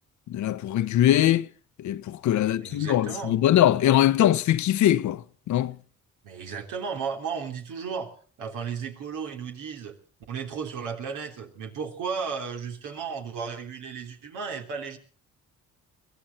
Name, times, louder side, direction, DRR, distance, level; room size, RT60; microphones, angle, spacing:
voice 1, 0.3-1.5 1.8-5.8, left 12 dB, 70° left, 0.8 m, -22 dB
voice 2, 2.4-3.4 6.2-10.0 10.3-15.0, right 6 dB, 90° right, 3.4 m, -34 dB
22.5 x 15.0 x 4.1 m
cardioid pair, 90°, 30 cm